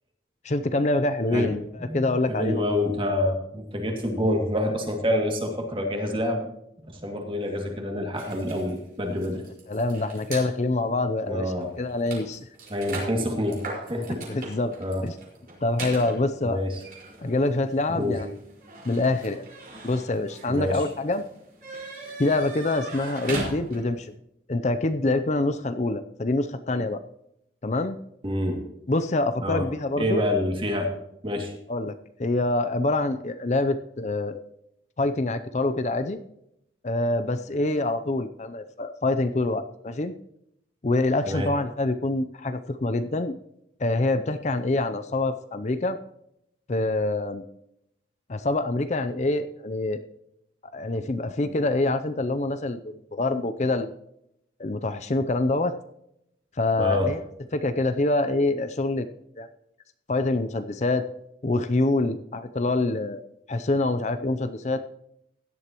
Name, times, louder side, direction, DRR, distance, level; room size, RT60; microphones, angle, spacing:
voice 1, 0.4-2.7 9.7-12.4 14.3-14.7 15.0-15.2 15.6-16.6 17.2-18.3 18.8-19.4 19.8-21.2 22.2-24.1 24.5-27.0 27.6-28.0 28.9-30.2 31.7-34.4 35.0-36.2 36.8-40.1 40.8-43.3 43.8-46.0 46.7-47.4 48.3-50.0 50.7-53.9 54.6-55.7 56.6-57.2 57.5-59.1 59.4-59.5 60.1-61.1 61.4-63.2 63.5-64.8, left 2 dB, 40° left, 10 dB, 0.6 m, -25 dB
voice 2, 1.8-6.5 7.0-9.4 11.3-11.7 12.7-13.6 13.9-14.3 14.8-15.0 16.4-16.8 17.9-18.2 20.5-20.8 28.2-28.6 29.4-29.6 30.0-30.9 31.2-31.5 41.3-41.5 56.8-57.1, left 1 dB, 30° right, 2 dB, 2.3 m, -27 dB
sound 1, 8.2-10.5 11.2-11.3 11.6-24.1, right 2 dB, 50° right, 4.8 m, -39 dB
16.5 x 11.5 x 3.0 m, 0.78 s
head